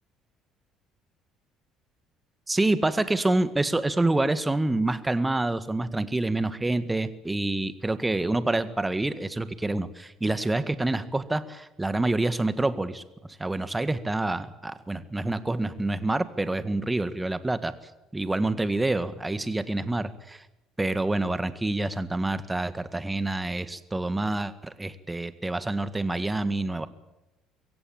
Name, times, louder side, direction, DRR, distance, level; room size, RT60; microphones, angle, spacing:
voice 1, 2.5-13.0 13.4-17.7 18.1-20.4 20.8-26.9, right 2 dB, 15° right, 12 dB, 1.8 m, -27 dB
23.0 x 17.0 x 8.9 m, 0.98 s
hypercardioid pair, 60°, 0 cm